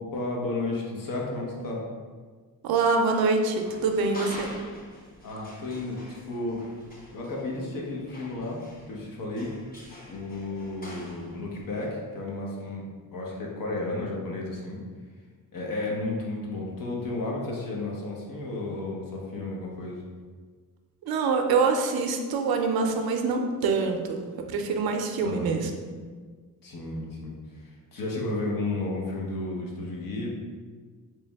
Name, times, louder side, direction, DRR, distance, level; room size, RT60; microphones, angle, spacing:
voice 1, 0.0-1.8 5.2-6.0 6.3-6.6 7.1-9.5 10.0-14.8 15.5-20.0 25.2-25.5 26.6-30.3, left 2 dB, 65° left, -2 dB, 0.9 m, -33 dB
voice 2, 2.6-4.5 21.0-24.2 24.5-25.7, right 4 dB, 85° right, 4 dB, 0.5 m, -25 dB
sound 1, 3.6-11.9, equal, 25° left, 0.9 m, -46 dB
3.3 x 3.1 x 3.4 m, 1.5 s
cardioid pair, 100°, 36 cm